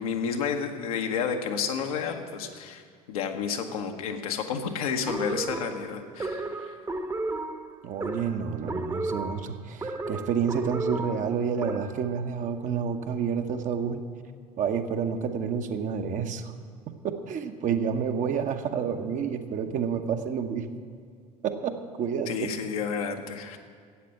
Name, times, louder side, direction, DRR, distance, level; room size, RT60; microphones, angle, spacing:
voice 1, 0.0-2.8 3.1-6.8 22.3-23.6, left 6 dB, 70° left, 4 dB, 1.1 m, -31 dB
sound 1, 5.1-12.1, right 2 dB, 15° right, 1.0 m, -33 dB
voice 2, 7.8-14.0 14.6-16.5 17.0-20.7 21.4-21.7 22.0-22.5, right 7 dB, 40° right, 6 dB, 1.0 m, -29 dB
12.5 x 8.5 x 7.6 m, 2.1 s
figure-of-eight pair, 65°, 19 cm